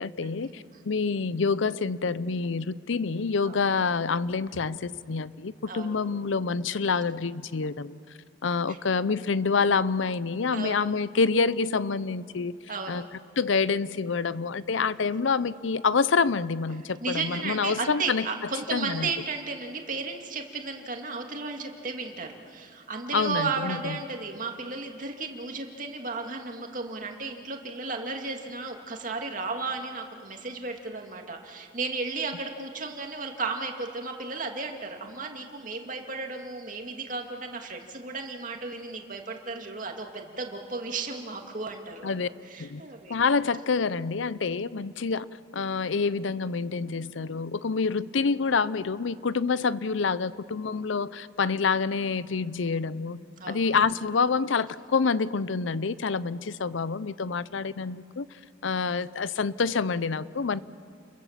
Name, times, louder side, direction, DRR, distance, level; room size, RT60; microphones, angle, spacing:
voice 1, 0.0-8.0 8.4-12.5 12.9-13.0 13.4-18.3 18.7-19.1 23.1-24.0 42.0-42.3 42.6-42.8 43.1-45.3 45.5-53.2 53.5-58.3 58.6-60.6, left 5 dB, 75° left, 17 dB, 0.6 m, -27 dB
voice 2, 12.7-13.1 17.0-42.2 42.4-43.1 53.4-53.6, right 4 dB, 40° right, 3 dB, 2.3 m, -34 dB
30.0 x 22.5 x 7.4 m, 2.2 s
head